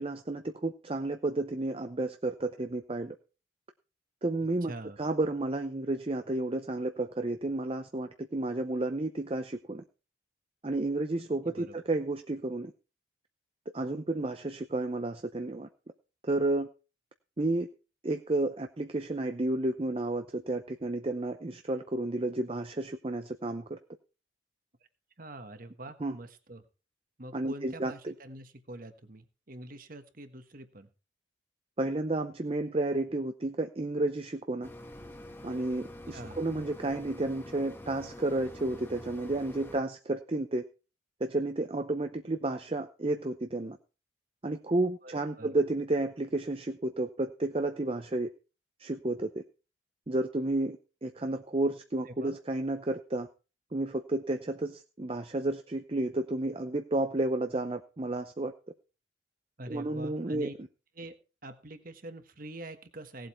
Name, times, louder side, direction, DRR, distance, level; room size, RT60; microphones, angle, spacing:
voice 1, 0.0-3.2 4.2-4.7 5.0-9.8 10.6-12.7 13.7-15.7 16.2-16.7 17.4-17.7 18.0-23.8 26.0-26.2 27.3-28.1 31.8-34.7 35.4-40.6 41.2-43.8 44.4-48.3 48.8-49.4 50.1-53.3 53.7-58.5 59.7-60.5, right 2 dB, 30° right, 7 dB, 0.6 m, -31 dB
voice 2, 4.6-5.0 11.5-11.8 25.2-26.6 27.2-30.9 36.1-36.5 45.0-45.6 52.1-52.4 59.6-60.5 60.9-61.1 61.4-63.3, right 1 dB, 45° right, 9 dB, 1.4 m, -45 dB
sound 1, 34.6-39.8, left 1 dB, 10° left, 1.5 m, -46 dB
17.5 x 7.9 x 4.4 m, 0.33 s
head